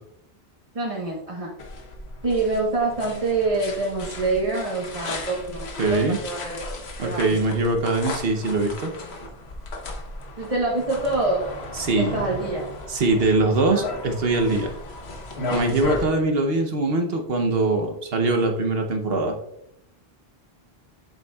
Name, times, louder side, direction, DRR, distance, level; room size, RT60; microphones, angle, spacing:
voice 1, 0.7-1.5 2.2-6.6 7.0-7.2 10.4-11.5 11.9-12.6 13.7-13.8, right 3 dB, 35° right, -3 dB, 1.2 m, -26 dB
sound 1, 1.6-16.1, left 2 dB, 90° left, 1.3 m, -35 dB
voice 2, 5.8-6.2 7.0-8.9 11.7-12.2 12.9-14.7 15.5-19.3, right 2 dB, 70° right, 4 dB, 1.1 m, -22 dB
8.0 x 7.5 x 2.3 m, 0.79 s
omnidirectional pair, 1.0 m